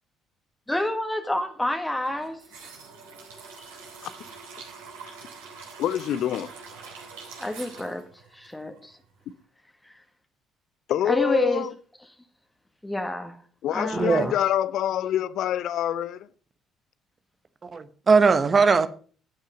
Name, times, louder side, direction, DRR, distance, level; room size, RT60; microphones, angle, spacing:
voice 1, 0.7-2.4 6.8-7.1 7.4-8.0 8.3-9.0 9.8-9.9 11.0-11.7 12.8-13.4 13.7-14.4, left 1 dB, 10° left, 1.7 m, -28 dB
sound 1, 2.0-9.1 9.3-9.4, right 5 dB, 75° right, 4.0 m, -44 dB
voice 2, 5.8-6.5 10.9-11.7 13.6-16.3, left 11 dB, 60° left, 0.7 m, -26 dB
voice 3, 13.9-14.3 17.6-18.9, right 4 dB, 35° right, 1.0 m, -20 dB
12.5 x 9.2 x 5.1 m
figure-of-eight pair, 50°, 0 cm